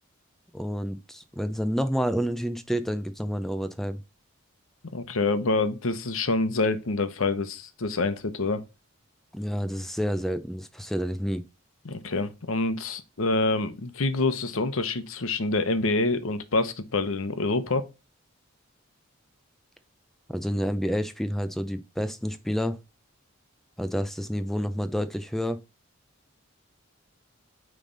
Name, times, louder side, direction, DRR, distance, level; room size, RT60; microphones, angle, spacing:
voice 1, 0.5-4.0 9.3-11.4 20.3-22.8 23.8-25.6, equal, ahead, 0.6 m, -29 dB
voice 2, 4.9-8.6 11.8-17.9, left 3 dB, 75° left, 0.9 m, -26 dB
8.8 x 3.4 x 3.9 m
head